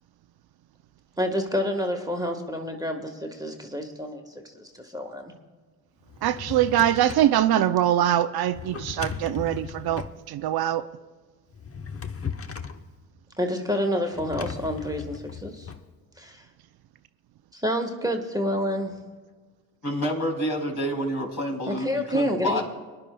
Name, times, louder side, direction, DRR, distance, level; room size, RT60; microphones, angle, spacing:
voice 1, 1.2-4.2 4.5-5.3 13.4-15.7 16.2-16.4 17.5-18.9 21.7-22.6, equal, 10° right, 3 dB, 1.4 m, -28 dB
Drawer open or close, 6.0-7.4 8.5-10.2 11.5-12.8 14.1-15.8, left 6 dB, 30° left, 0.9 m, -37 dB
voice 2, 6.2-10.9, right 11 dB, 55° right, 11 dB, 0.6 m, -23 dB
voice 3, 19.8-22.6, equal, 55° left, -1 dB, 4.1 m, -28 dB
24.0 x 10.5 x 2.3 m, 1.4 s
hypercardioid pair, 55°, 46 cm